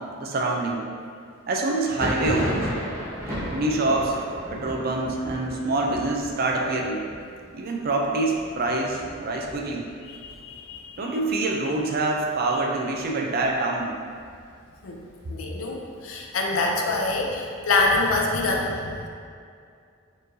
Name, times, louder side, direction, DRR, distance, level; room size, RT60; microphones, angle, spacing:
voice 1, 0.2-0.8 1.5-2.7 3.5-4.2 4.5-7.1 7.5-9.9 11.0-14.0, right 2 dB, 50° right, 0 dB, 0.4 m, -25 dB
Thunder, 1.8-11.3 11.6-12.3 12.5-13.5 13.9-15.6, equal, 15° right, 0.9 m, -35 dB
voice 2, 10.1-11.1 14.8-15.0 15.3-19.1, left 2 dB, 90° left, 0 dB, 0.5 m, -26 dB
4.4 x 3.1 x 2.7 m, 2.3 s
head